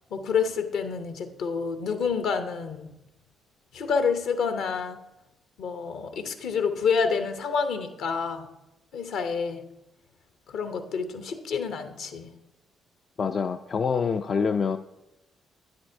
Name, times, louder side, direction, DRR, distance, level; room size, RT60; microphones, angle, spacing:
voice 1, 0.1-2.9 3.7-5.0 5.6-8.5 8.9-9.6 10.5-12.3, left 5 dB, 65° left, 8 dB, 0.7 m, -28 dB
voice 2, 13.2-14.8, left 5 dB, 45° left, 7 dB, 0.3 m, -26 dB
9.6 x 7.8 x 2.7 m, 0.92 s
hypercardioid pair, 45°, 0 cm